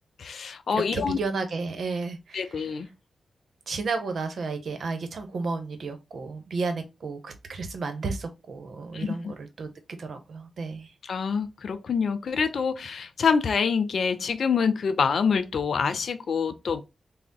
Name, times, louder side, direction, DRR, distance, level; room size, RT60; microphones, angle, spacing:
voice 1, 0.2-1.2 2.3-2.9 8.9-9.3 11.0-16.8, left 6 dB, 70° left, 0.4 m, -26 dB
voice 2, 0.7-2.7 3.7-9.7 10.0-10.9, right 4 dB, 70° right, 0.8 m, -32 dB
3.4 x 2.1 x 3.9 m
supercardioid pair, 45°, 0 cm